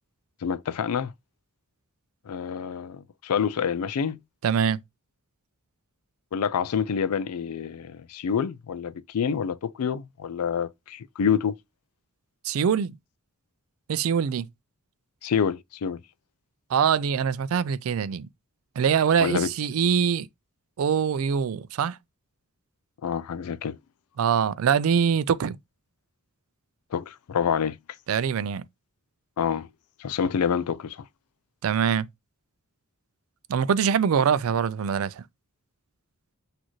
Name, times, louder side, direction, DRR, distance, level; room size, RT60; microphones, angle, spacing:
voice 1, 0.4-1.1 2.3-4.2 6.3-11.5 15.2-16.0 19.2-19.5 23.0-23.8 26.9-27.8 29.4-29.7 30.0-31.0, left 7 dB, 85° left, 0.4 m, -27 dB
voice 2, 4.4-4.8 12.4-13.0 13.9-14.5 16.7-18.3 18.8-20.3 20.8-22.0 24.2-25.6 28.1-28.6 31.6-32.1 33.5-35.2, right 7 dB, 65° right, 0.3 m, -23 dB
6.3 x 2.5 x 3.0 m
head